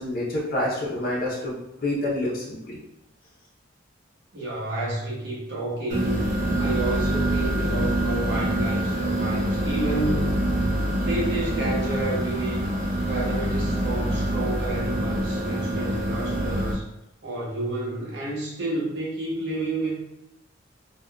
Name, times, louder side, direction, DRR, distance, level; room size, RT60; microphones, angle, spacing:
voice 1, 0.0-2.8, left 1 dB, 50° left, -5 dB, 0.6 m, -28 dB
voice 2, 4.3-6.2 6.6-10.4 11.0-12.7 13.0-16.9 17.2-20.0, right 2 dB, 60° right, -4 dB, 0.9 m, -30 dB
sound 1, 5.9-16.7, right 1 dB, 45° right, 0.6 m, -25 dB
3.6 x 2.3 x 2.2 m, 0.89 s
head